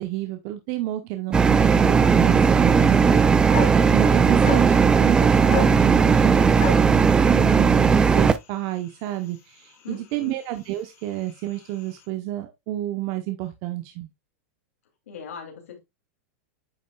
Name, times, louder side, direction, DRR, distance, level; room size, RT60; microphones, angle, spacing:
voice 1, 0.0-3.2 3.9-14.1, right 15 dB, 45° right, 0.9 m, -30 dB
sound 1, 1.3-8.4, right 5 dB, 10° right, 0.4 m, -17 dB
sound 2, 3.3-12.1, left 5 dB, 40° left, 3.3 m, -38 dB
voice 2, 9.8-10.3 15.1-15.8, left 7 dB, 85° left, 2.8 m, -39 dB
9.2 x 6.3 x 2.3 m
supercardioid pair, 150°, 7 cm